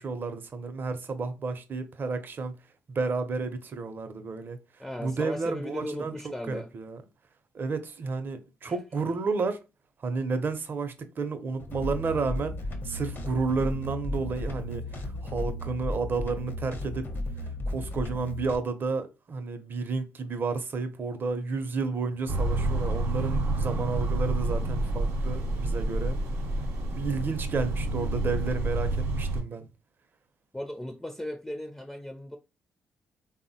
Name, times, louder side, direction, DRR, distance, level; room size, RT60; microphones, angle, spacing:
voice 1, 0.0-2.6 2.9-4.6 5.0-6.1 6.5-7.0 7.5-9.6 10.0-12.6 12.8-17.1 17.7-26.2 27.0-29.6, right 4 dB, 45° right, 0.5 m, -31 dB
voice 2, 4.8-6.7 8.7-8.8 30.5-32.4, left 1 dB, 5° left, 0.4 m, -37 dB
sound 1, 11.6-18.6, left 1 dB, 50° left, 0.6 m, -34 dB
sound 2, 22.3-29.4, right 2 dB, 85° right, 0.7 m, -29 dB
3.4 x 2.0 x 2.6 m
cardioid pair, 75°, 5 cm